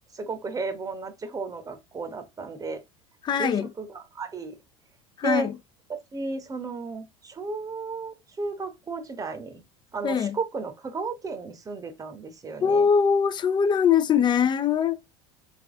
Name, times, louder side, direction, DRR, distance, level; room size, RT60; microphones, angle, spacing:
voice 1, 0.1-2.8 3.4-3.5 3.8-4.6 5.2-5.5 5.9-9.6 9.9-12.9, right 4 dB, 20° right, 1.0 m, -33 dB
voice 2, 3.2-3.7 5.2-5.5 10.0-10.4 12.6-15.0, left 7 dB, 30° left, 0.6 m, -22 dB
3.5 x 3.3 x 3.5 m
supercardioid pair, 95°, 16 cm